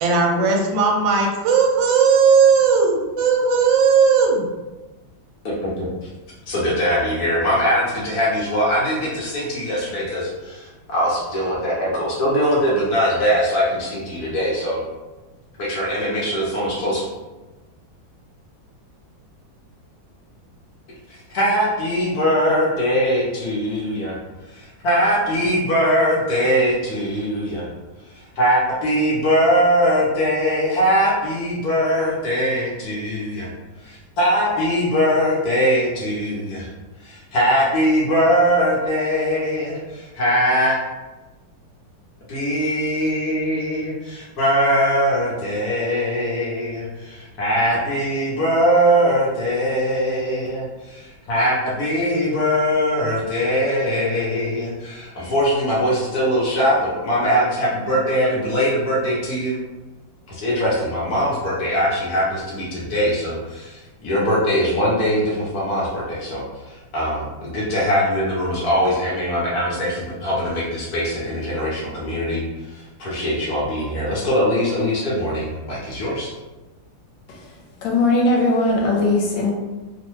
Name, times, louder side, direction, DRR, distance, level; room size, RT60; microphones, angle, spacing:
voice 1, 0.0-4.5, right 5 dB, 80° right, 1 dB, 1.2 m, -16 dB
voice 2, 5.4-6.1 6.5-14.8 15.6-17.1 21.1-24.2 24.5-27.7 28.1-33.5 33.8-36.7 37.0-40.8 42.3-59.6 60.3-76.3, equal, 65° left, -6 dB, 1.1 m, -21 dB
voice 3, 77.8-79.5, left 2 dB, 80° left, -1 dB, 1.4 m, -19 dB
3.1 x 2.1 x 3.0 m, 1.1 s
omnidirectional pair, 2.1 m